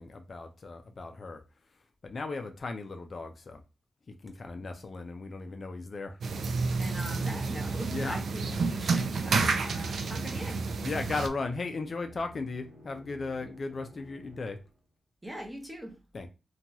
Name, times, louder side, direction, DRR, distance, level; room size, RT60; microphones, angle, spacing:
voice 1, 0.0-1.4 2.0-3.6 4.1-6.2 7.9-8.2 9.6-10.1 10.8-14.6 16.1-16.3, left 3 dB, 40° left, 0.3 m, -36 dB
sound 1, 6.2-11.3, right 4 dB, 65° right, 0.3 m, -30 dB
Musical instrument, 6.3-14.8, equal, 80° right, 0.8 m, -51 dB
voice 2, 6.8-10.7 13.4-13.5 15.2-16.0, right 1 dB, 10° right, 0.7 m, -41 dB
2.8 x 2.2 x 2.7 m
wide cardioid pair, 135°, 0 cm